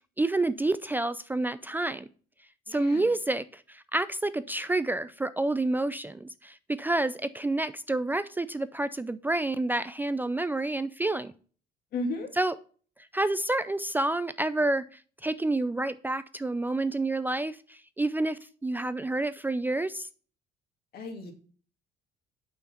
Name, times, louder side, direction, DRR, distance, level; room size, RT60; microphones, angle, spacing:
voice 1, 0.2-2.1 2.7-11.3 12.3-12.6 13.1-20.1, right 2 dB, 10° right, 0.3 m, -29 dB
voice 2, 2.7-3.0 11.9-12.3 20.9-21.3, left 2 dB, 65° left, 2.2 m, -34 dB
6.8 x 5.8 x 5.5 m
cardioid pair, 110°, 17 cm